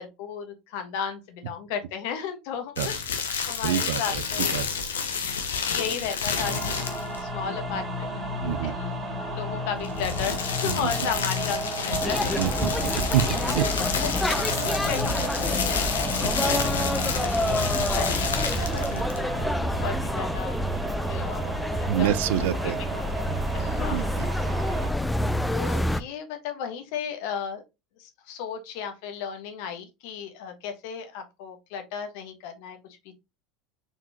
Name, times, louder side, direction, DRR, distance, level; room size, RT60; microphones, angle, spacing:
voice 1, 0.0-4.6 4.9-5.3 5.6-8.1 8.6-9.0 9.3-12.3 14.0-14.1 14.9-20.6 21.1-22.2 22.6-23.3 23.5-24.0 24.3-24.4 25.5-27.6 28.0-32.8, left 7 dB, 65° left, 1.2 m, -35 dB
sound 1, 2.8-7.3 9.7-19.3, left 6 dB, 85° left, 0.8 m, -30 dB
voice 2, 3.6-4.2 4.5-4.7 8.4-8.7 10.6-10.9 12.4-13.2 13.5-13.7 15.1-15.2 18.9-19.0 21.9-22.8 23.9-24.3, right 12 dB, 70° right, 0.4 m, -27 dB
sound 2, 6.3-24.9, right 1 dB, 25° right, 2.2 m, -32 dB
sound 3, 12.0-26.0, left 1 dB, 5° left, 0.4 m, -28 dB
4.4 x 3.9 x 2.8 m
hypercardioid pair, 80°, 0 cm